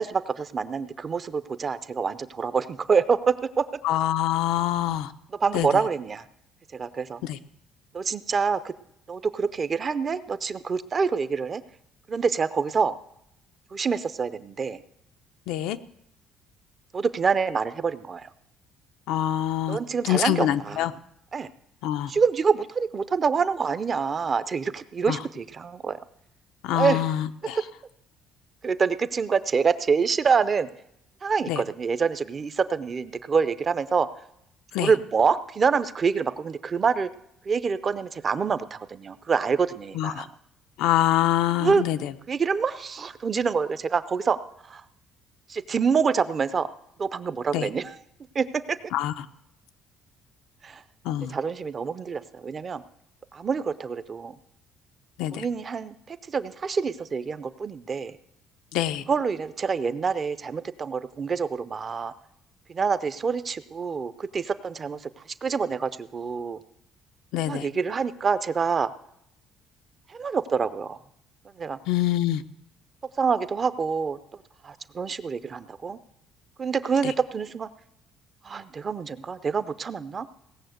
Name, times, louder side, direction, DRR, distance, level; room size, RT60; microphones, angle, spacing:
voice 1, 0.0-3.7 5.3-6.2 6.7-7.2 7.9-8.7 9.1-11.6 12.1-12.9 13.7-14.8 16.9-18.3 19.7-20.9 21.3-21.5 22.1-26.0 26.7-27.1 27.5-27.7 28.6-30.7 31.2-34.1 34.8-37.1 37.5-40.3 41.6-41.8 42.3-44.4 44.6-44.8 45.5-46.7 47.0-48.0 48.3-48.8 50.6-50.8 51.3-52.8 53.3-54.4 55.3-58.2 59.1-62.1 62.7-65.1 65.4-66.6 67.5-68.9 70.1-71.0 71.6-71.8 73.2-76.0 76.6-77.7 78.4-80.3, right 5 dB, 25° right, 14 dB, 0.5 m, -26 dB
voice 2, 3.8-5.1 5.5-5.7 7.2-7.4 15.5-15.8 19.1-19.8 20.0-20.9 21.8-22.1 25.1-25.2 26.6-27.6 31.5-31.6 34.7-34.9 40.0-40.3 40.8-42.0 47.5-47.7 48.9-49.1 51.0-51.3 55.2-55.4 58.7-59.0 67.3-67.7 71.9-72.4 77.0-77.1, left 13 dB, 85° left, 9 dB, 0.6 m, -25 dB
17.5 x 7.1 x 7.8 m, 0.76 s
cardioid pair, 170°, 0 cm